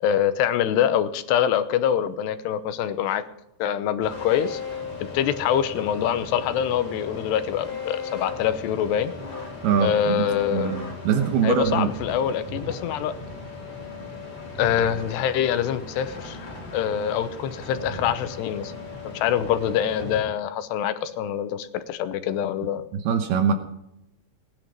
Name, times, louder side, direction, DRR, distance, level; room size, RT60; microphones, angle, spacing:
voice 1, 0.0-3.3 3.6-4.6 5.1-9.1 9.8-10.7 11.4-13.2 14.6-18.7 19.0-22.9, left 9 dB, 85° left, 11 dB, 3.1 m, -25 dB
sound 1, 4.0-20.2, left 3 dB, 30° left, 4.1 m, -37 dB
voice 2, 9.6-11.9 22.9-23.5, right 7 dB, 75° right, 7 dB, 2.9 m, -23 dB
19.0 x 10.5 x 5.3 m, 0.82 s
omnidirectional pair, 4.8 m